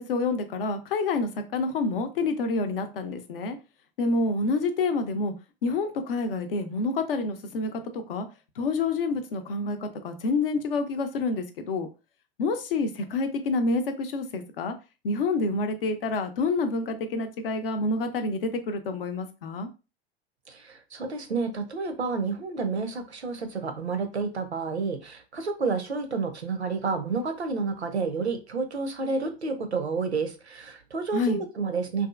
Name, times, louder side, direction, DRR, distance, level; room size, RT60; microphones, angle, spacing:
voice 1, 0.1-3.6 4.0-5.3 5.6-7.8 8.1-8.3 8.6-11.9 12.4-14.7 15.0-19.7 31.1-31.4, left 3 dB, 60° left, 8 dB, 0.6 m, -28 dB
voice 2, 20.9-32.1, right 4 dB, 85° right, 7 dB, 0.5 m, -30 dB
2.7 x 2.4 x 2.3 m, 0.30 s
figure-of-eight pair, 85°, 32 cm